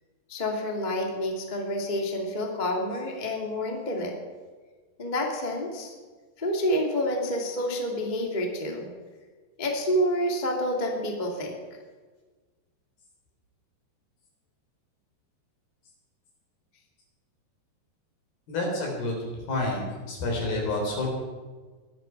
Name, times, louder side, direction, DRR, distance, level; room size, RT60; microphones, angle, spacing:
voice 1, 0.3-4.1 5.0-5.9 6.4-8.9 9.6-11.6, equal, 15° left, 0 dB, 1.5 m, -28 dB
voice 2, 18.5-19.2 19.5-21.1, left 2 dB, 60° left, -1 dB, 6.0 m, -29 dB
21.5 x 13.0 x 4.7 m, 1.4 s
omnidirectional pair, 4.9 m